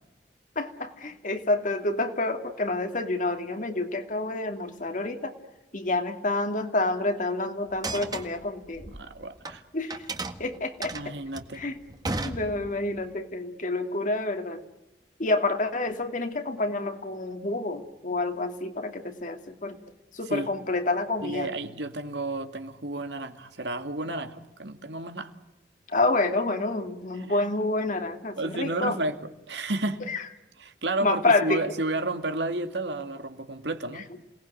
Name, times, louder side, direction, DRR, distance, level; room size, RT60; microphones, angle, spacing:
voice 1, 0.6-5.3 5.7-8.9 9.7-10.1 10.4-10.9 11.5-11.8 12.2-14.6 15.2-19.8 20.1-21.5 25.9-29.0 30.1-30.3 31.0-31.6 33.9-34.0, left 2 dB, 45° left, 6 dB, 2.5 m, -28 dB
sound 1, 7.7-9.6 9.9-13.0, right 2 dB, 25° right, 1.7 m, -35 dB
voice 2, 8.9-9.6 10.9-11.6 20.3-20.5 21.2-25.3 28.4-29.1 29.5-30.0 30.6-34.1, right 2 dB, 80° right, 7 dB, 2.3 m, -31 dB
28.0 x 19.0 x 9.3 m, 0.98 s
head